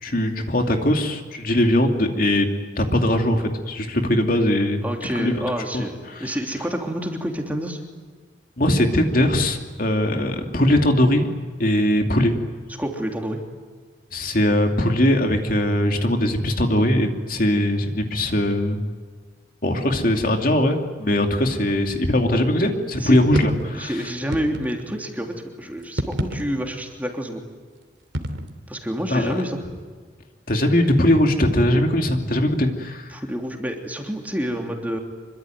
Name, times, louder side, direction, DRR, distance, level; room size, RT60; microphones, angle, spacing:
voice 1, 0.0-2.5 2.8-4.8 5.1-5.4 5.7-6.3 8.6-11.3 11.6-12.3 14.1-18.8 19.6-24.0 29.1-29.4 30.5-33.1, left 1 dB, 45° left, 4 dB, 2.7 m, -20 dB
voice 2, 4.8-7.8 12.8-13.4 23.0-23.2 23.7-27.4 28.7-29.6 33.1-35.0, equal, 10° right, 2 dB, 3.1 m, -28 dB
sound 1, 23.0-23.7 24.3-25.0 25.8-26.8 28.1-28.5, equal, 75° right, 3.0 m, -28 dB
26.5 x 24.0 x 9.2 m, 1.5 s
head